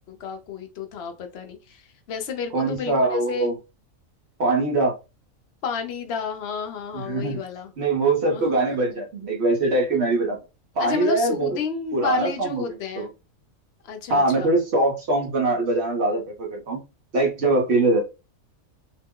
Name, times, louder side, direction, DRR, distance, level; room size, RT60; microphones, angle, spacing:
voice 1, 0.1-1.8 2.1-3.5 5.6-7.7 8.3-8.6 10.8-13.1 13.8-14.5, left 5 dB, 55° left, 0.8 m, -31 dB
voice 2, 2.5-3.5 4.4-4.9 6.9-7.4 7.8-10.4 10.7-11.6 11.9-12.6 13.0-13.1 14.1-16.8 17.1-18.0, right 2 dB, 55° right, 1.1 m, -22 dB
2.9 x 2.1 x 3.6 m
omnidirectional pair, 1.4 m